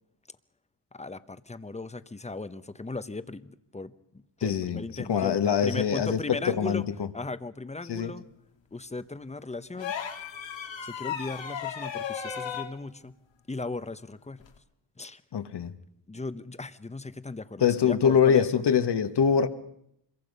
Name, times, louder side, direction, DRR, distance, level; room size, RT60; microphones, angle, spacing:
voice 1, 0.9-6.8 7.1-8.2 8.7-9.9 10.8-13.1 13.5-14.4 15.0-15.2 16.1-18.6, left 3 dB, 15° left, 0.9 m, -37 dB
voice 2, 4.4-6.2 6.5-7.1 7.9-8.1 15.3-15.7 17.6-19.5, left 7 dB, 65° left, 1.5 m, -24 dB
sound 1, 9.8-12.7 14.4-14.6, left 8 dB, 80° left, 2.4 m, -35 dB
26.0 x 22.5 x 5.4 m
cardioid pair, 95°, 44 cm